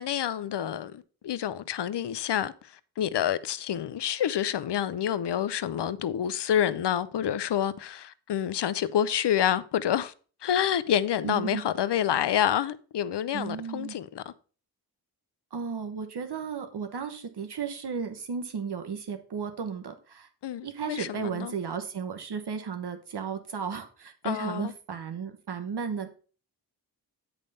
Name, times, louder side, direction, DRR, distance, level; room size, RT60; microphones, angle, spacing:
voice 1, 0.0-10.1 10.4-14.2 20.4-21.5 24.2-24.7, left 10 dB, 75° left, 0.6 m, -28 dB
voice 2, 11.2-11.6 13.3-13.9 15.5-20.3 20.6-26.1, right 6 dB, 70° right, 1.0 m, -34 dB
9.8 x 3.4 x 5.4 m
cardioid pair, 50°, 41 cm